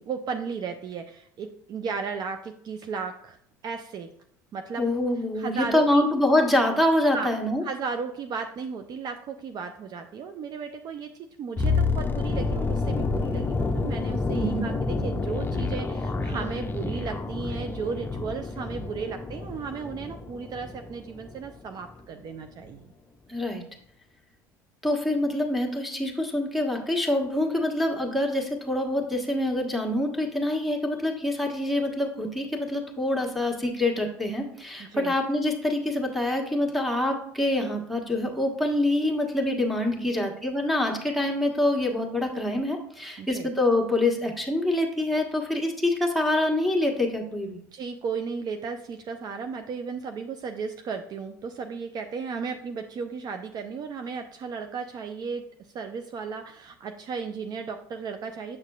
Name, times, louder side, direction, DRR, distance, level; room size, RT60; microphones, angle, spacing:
voice 1, 0.1-3.4 3.6-4.1 4.5-4.8 5.4-6.1 7.1-7.3 7.6-11.1 11.4-22.8 34.8-35.1 40.1-40.2 43.2-43.5 47.7-55.5 55.7-58.6, right 5 dB, 45° right, 7 dB, 0.5 m, -35 dB
voice 2, 4.8-7.6 14.3-14.7 23.3-23.6 24.8-47.6, left 1 dB, ahead, 0 dB, 1.4 m, -25 dB
sound 1, 11.6-21.6 21.8-22.0, left 3 dB, 20° left, 0.6 m, -29 dB
7.3 x 6.4 x 2.4 m, 0.67 s
hypercardioid pair, 70°, 10 cm